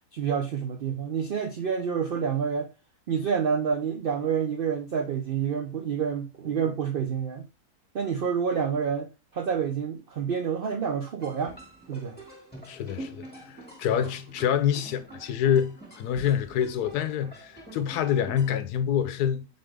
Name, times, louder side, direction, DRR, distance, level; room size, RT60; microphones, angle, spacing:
voice 1, 0.1-2.7 3.1-7.4 7.9-11.5 11.9-12.2 13.9-14.0, right 7 dB, 80° right, 0.5 m, -28 dB
sound 1, 11.2-18.5, right 1 dB, 5° left, 1.3 m, -45 dB
voice 2, 12.7-19.5, left 9 dB, 80° left, 1.1 m, -27 dB
4.1 x 3.7 x 3.3 m
omnidirectional pair, 1.6 m